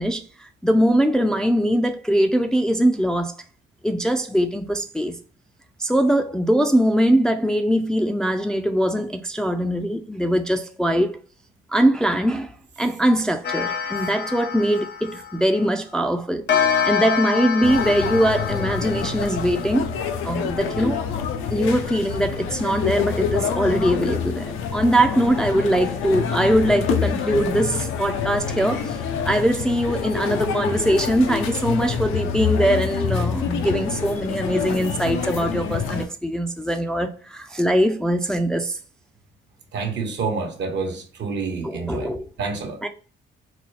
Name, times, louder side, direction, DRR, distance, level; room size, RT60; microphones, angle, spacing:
voice 1, 0.0-3.3 3.8-5.2 5.8-11.1 11.7-16.5 16.8-19.9 20.2-21.0 21.5-29.0 29.2-38.8 41.6-42.3 42.8-42.9, equal, 5° left, 0.3 m, -21 dB
Clock, 13.4-15.7 16.5-19.9, left 7 dB, 55° left, 0.8 m, -26 dB
sound 1, 17.6-36.1, left 7 dB, 90° left, 0.5 m, -27 dB
voice 2, 39.7-42.8, right 4 dB, 65° right, 0.9 m, -28 dB
4.0 x 2.3 x 3.1 m
cardioid pair, 90°, 20 cm